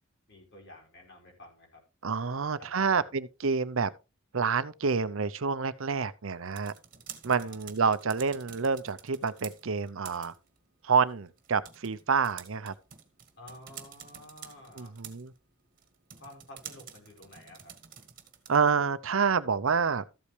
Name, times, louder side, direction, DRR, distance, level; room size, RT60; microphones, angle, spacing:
voice 1, 0.3-1.8 2.3-3.1 7.4-7.6 13.4-14.9 16.1-17.7, left 1 dB, 55° left, 4.7 m, -51 dB
voice 2, 2.0-3.9 4.3-6.7 7.2-10.3 10.8-12.7 14.8-15.3 18.5-20.0, right 5 dB, 65° right, 0.7 m, -28 dB
sound 1, 6.3-18.8, right 9 dB, 40° right, 1.7 m, -50 dB
13.5 x 8.4 x 3.2 m
head